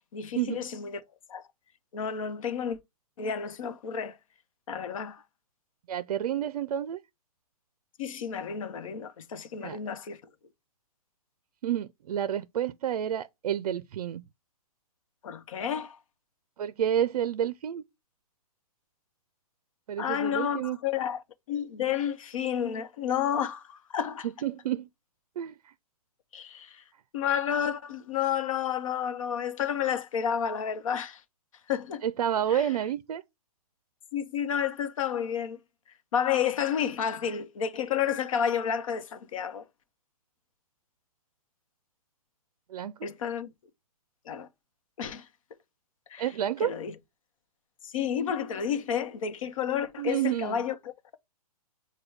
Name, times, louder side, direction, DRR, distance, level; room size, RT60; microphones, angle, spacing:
voice 1, 0.1-1.0 1.3-1.4 1.9-2.8 3.2-4.2 4.7-5.2 8.0-10.2 15.2-16.0 20.0-21.2 21.5-24.3 26.3-26.8 27.1-31.2 31.7-32.0 32.5-32.7 34.1-35.6 36.1-39.6 43.0-43.5 44.3-44.5 45.0-45.3 46.1-46.2 46.6-46.9 47.8-51.2, left 8 dB, 60° left, 0.8 m, -31 dB
voice 2, 5.9-7.0 9.6-9.8 11.6-14.2 16.6-17.8 19.9-20.8 24.2-24.9 25.4-25.7 32.0-33.2 42.7-42.9 46.2-46.7 50.0-50.6, right 10 dB, 70° right, 0.4 m, -29 dB
6.2 x 2.2 x 3.2 m
hypercardioid pair, 155°, 20 cm